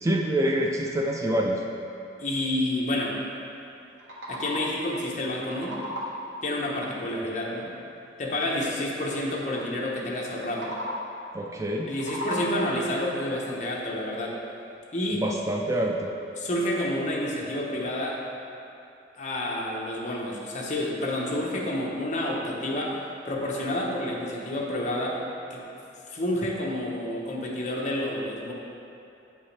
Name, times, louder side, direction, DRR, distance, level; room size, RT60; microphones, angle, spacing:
voice 1, 0.0-1.6 11.3-11.9 15.2-16.1, right 1 dB, 15° right, 0 dB, 0.4 m, -26 dB
voice 2, 2.2-3.2 4.3-5.8 6.4-7.7 8.2-10.7 11.9-14.4 14.9-15.2 16.4-18.2 19.2-23.0 23.2-25.2 25.5-25.6 26.1-28.5, left 1 dB, 45° left, -3 dB, 1.0 m, -29 dB
sound 1, 3.8-4.9 5.3-6.4 10.4-11.3 11.7-12.8, left 1 dB, 75° right, 1.2 m, -35 dB
8.5 x 5.5 x 3.3 m, 2.7 s
head